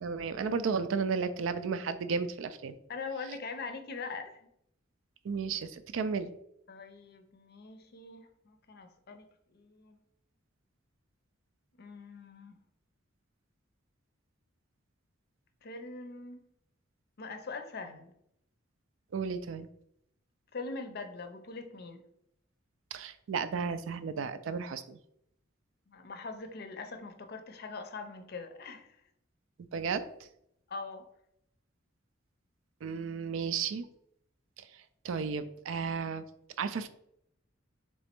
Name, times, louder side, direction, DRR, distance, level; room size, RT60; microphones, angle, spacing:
voice 1, 0.0-2.7 5.2-6.3 19.1-19.7 22.9-25.0 29.7-30.0 32.8-33.9 34.6-34.7 35.0-36.2 36.6-36.9, right 5 dB, 80° right, 0.4 m, -33 dB
voice 2, 2.9-4.5 6.7-10.0 11.8-12.6 15.6-16.4 17.2-18.1 20.5-22.0 25.9-28.9 30.7-31.1, left 4 dB, 50° left, 0.5 m, -42 dB
3.4 x 3.0 x 4.4 m
head